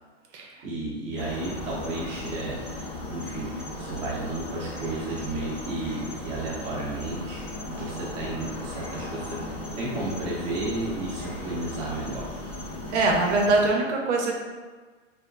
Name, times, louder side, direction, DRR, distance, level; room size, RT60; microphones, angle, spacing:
voice 1, 0.6-9.4 9.7-12.4, right 2 dB, 20° right, -7 dB, 0.6 m, -33 dB
sound 1, 1.2-13.7, left 1 dB, 50° left, 1.1 m, -36 dB
voice 2, 12.9-14.4, right 2 dB, 65° right, 0 dB, 0.6 m, -23 dB
2.8 x 2.4 x 2.2 m, 1.4 s
hypercardioid pair, 135°, 38 cm